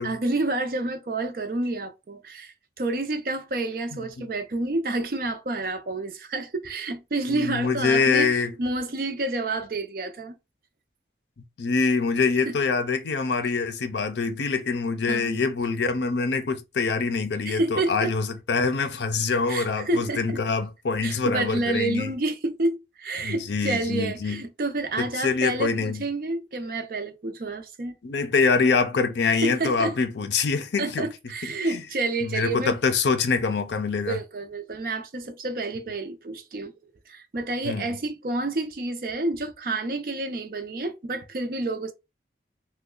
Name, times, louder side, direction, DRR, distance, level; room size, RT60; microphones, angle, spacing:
voice 1, 0.0-10.4 12.5-12.6 15.1-15.4 17.4-18.1 19.5-20.4 21.0-27.9 29.3-30.0 30.8-32.8 34.1-41.9, right 2 dB, 55° right, 0.5 m, -29 dB
voice 2, 7.3-8.5 11.6-22.1 23.2-24.4 25.0-26.1 28.0-31.1 31.4-31.8 32.2-34.2 37.6-38.0, left 4 dB, 80° left, 0.5 m, -25 dB
3.0 x 2.1 x 3.7 m
head